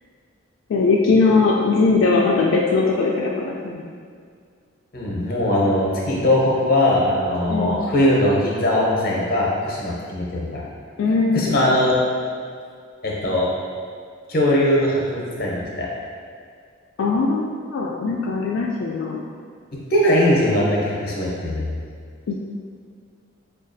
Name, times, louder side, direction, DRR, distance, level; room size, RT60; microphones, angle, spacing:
voice 1, 0.7-3.8 7.5-7.8 11.0-11.6 17.0-19.2 22.3-22.4, left 3 dB, 80° left, -3 dB, 0.3 m, -20 dB
voice 2, 4.9-10.6 11.3-12.0 13.0-13.5 14.3-15.9 19.9-21.8, left 1 dB, 45° left, -4 dB, 0.7 m, -20 dB
5.0 x 2.3 x 2.5 m, 2.1 s
head